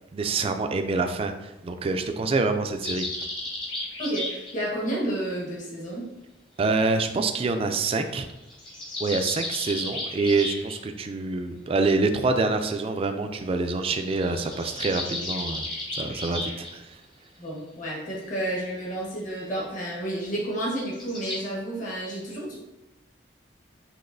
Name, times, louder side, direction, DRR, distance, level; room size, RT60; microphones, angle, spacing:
voice 1, 0.1-3.1 6.6-8.3 9.0-15.7 15.9-17.0, right 3 dB, 30° right, 7 dB, 0.3 m, -26 dB
sound 1, 2.8-4.5 8.3-10.8 14.0-16.7 20.8-21.4, left 2 dB, 25° left, 1.0 m, -34 dB
voice 2, 4.0-6.1 17.4-22.5, right 1 dB, 45° left, -5 dB, 1.3 m, -31 dB
5.8 x 3.0 x 2.6 m, 0.94 s
head